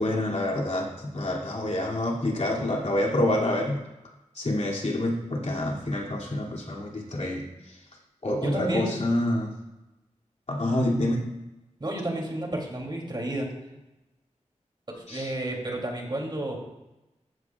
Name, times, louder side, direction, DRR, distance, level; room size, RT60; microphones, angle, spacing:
voice 1, 0.0-3.8 4.4-7.4 8.2-9.5 10.5-11.2 15.1-15.3, left 1 dB, 60° left, -3 dB, 2.8 m, -27 dB
voice 2, 8.4-9.0 11.8-13.5 14.9-16.6, right 1 dB, 40° right, 0 dB, 3.1 m, -31 dB
14.5 x 11.5 x 2.5 m, 0.98 s
wide cardioid pair, 70°, 12 cm